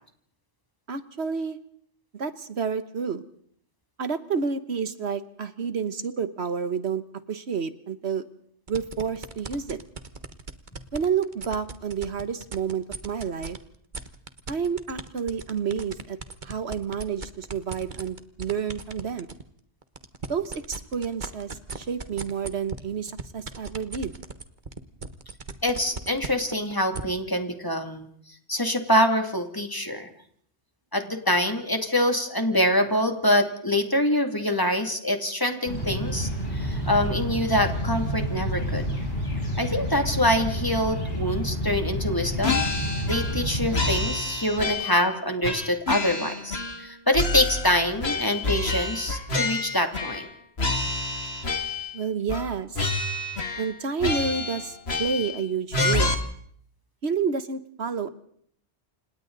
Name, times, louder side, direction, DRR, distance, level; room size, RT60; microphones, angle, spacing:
voice 1, 0.9-1.6 2.1-3.2 4.0-8.2 8.7-9.8 10.9-13.6 14.5-16.2 16.4-19.3 20.3-24.1 51.9-52.9 53.6-56.1 57.0-58.1, right 6 dB, 70° right, 12 dB, 1.4 m, -29 dB
sound 1, 8.7-13.6 13.9-19.4 19.8-27.0, right 4 dB, 45° right, 1.5 m, -36 dB
voice 2, 25.6-28.1 28.5-30.1 30.9-38.9 39.6-42.6 43.1-50.3, left 1 dB, 20° left, 5 dB, 2.5 m, -25 dB
sound 2, 35.6-44.0, equal, 45° left, 7.8 m, -29 dB
sound 3, 42.4-43.4 43.7-45.1 45.4-46.9 47.1-50.3 50.6-52.0 52.3-52.5 52.8-53.7 54.0-55.4 55.7-56.1, left 3 dB, 65° left, 2.4 m, -28 dB
29.0 x 26.5 x 4.0 m, 0.63 s
omnidirectional pair, 1.1 m